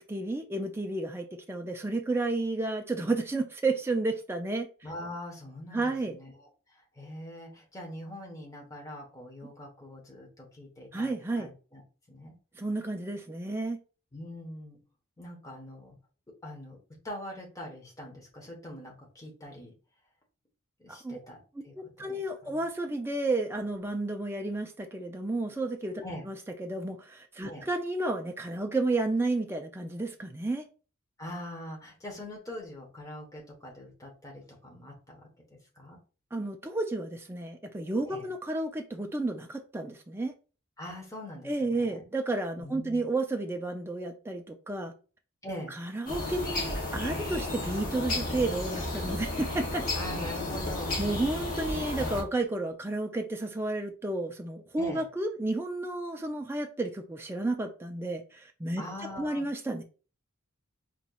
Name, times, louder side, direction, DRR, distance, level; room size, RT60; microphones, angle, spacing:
voice 1, 0.0-4.7 5.7-6.2 10.9-11.5 12.6-13.8 20.9-21.2 21.8-30.7 36.3-40.3 41.4-44.9 45.7-49.9 51.0-58.8 59.1-59.8, right 2 dB, 10° right, 0.3 m, -32 dB
voice 2, 4.8-11.1 11.4-11.8 12.1-12.3 14.1-14.8 15.2-16.0 16.3-16.8 17.0-19.7 20.8-22.6 26.0-26.2 27.4-27.6 31.2-36.0 38.0-38.3 40.8-42.0 42.6-43.0 45.4-45.8 49.9-51.0 54.8-55.0 58.8-59.5, left 1 dB, 15° left, 1.0 m, -43 dB
sound 1, 46.1-52.2, left 2 dB, 40° left, 1.3 m, -33 dB
4.2 x 3.0 x 2.3 m
head